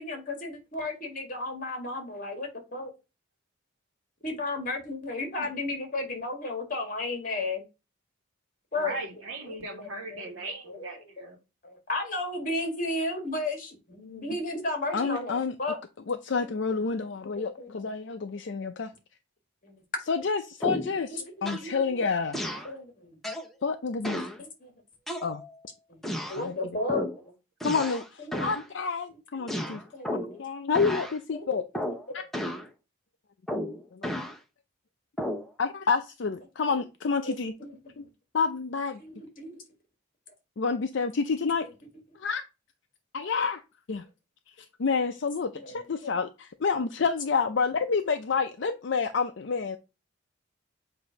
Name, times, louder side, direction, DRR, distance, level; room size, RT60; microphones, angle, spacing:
voice 1, 0.0-2.9 4.2-7.6 8.7-9.0 9.4-11.3 11.6-15.8 16.3-16.8 17.4-17.7 18.0-18.1 19.6-19.8 21.1-22.1 22.6-23.2 24.4-24.8 25.9-26.0 26.3-27.0 28.2-28.5 29.3-29.5 29.9-30.4 31.3-31.6 36.7-36.8 37.2-38.1 39.0-39.6 41.6-41.7 43.9-44.0 45.5-46.2, left 2 dB, 40° left, 1.8 m, -34 dB
voice 2, 8.8-11.4, right 2 dB, 85° right, 1.3 m, -38 dB
voice 3, 14.9-15.5 16.1-18.9 20.1-22.6 23.6-24.2 25.2-25.4 26.4-26.5 27.6-29.8 30.4-31.6 32.1-32.2 33.9-34.1 35.6-37.5 38.0-38.1 38.3-39.0 40.6-41.7 42.2-42.4 43.1-43.6 43.9-44.0 44.8-49.8, left 5 dB, 60° left, 0.5 m, -28 dB
sound 1, 20.6-21.0 21.5-21.7 22.3-22.7 23.2-23.5 24.0-24.4 25.1-25.6 26.0-26.4 26.9-27.2 27.6-28.1 28.3-28.7 29.5-30.4 30.7-31.2 31.7-32.1 32.3-32.7 33.5-34.4 35.2-35.5, left 1 dB, ahead, 0.7 m, -33 dB
7.7 x 2.6 x 5.1 m
head